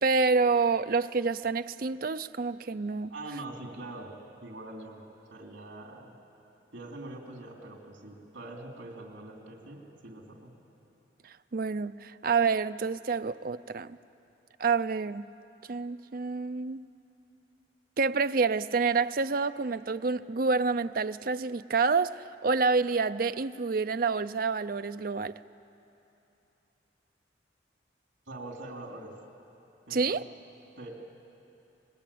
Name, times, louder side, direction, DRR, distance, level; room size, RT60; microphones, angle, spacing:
voice 1, 0.0-3.1 11.5-14.0 14.6-15.2 15.7-16.8 18.0-25.4 29.9-30.2, right 4 dB, 50° right, 0.5 m, -28 dB
voice 2, 3.1-4.1 4.4-5.0 5.3-6.1 6.7-10.5 28.3-29.2 29.9-30.2 30.8-30.9, right 2 dB, 80° right, 3.4 m, -43 dB
27.5 x 20.5 x 8.6 m
head